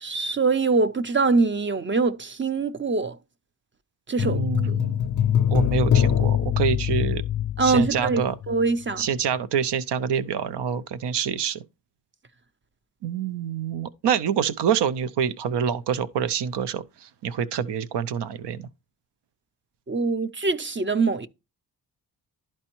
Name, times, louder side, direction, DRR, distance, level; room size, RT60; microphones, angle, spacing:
voice 1, 0.0-3.2 4.1-4.4 4.7-4.8 7.6-8.2 8.5-9.0 19.9-21.3, right 4 dB, 30° right, 0.5 m, -23 dB
sound 1, 4.2-8.6 8.9-9.0, left 9 dB, 50° left, 0.4 m, -23 dB
voice 2, 4.2-5.1 5.5-7.2 7.6-8.4 9.0-11.6 13.0-18.7, right 7 dB, 85° right, 0.6 m, -26 dB
12.0 x 4.4 x 2.9 m
wide cardioid pair, 90°, 40 cm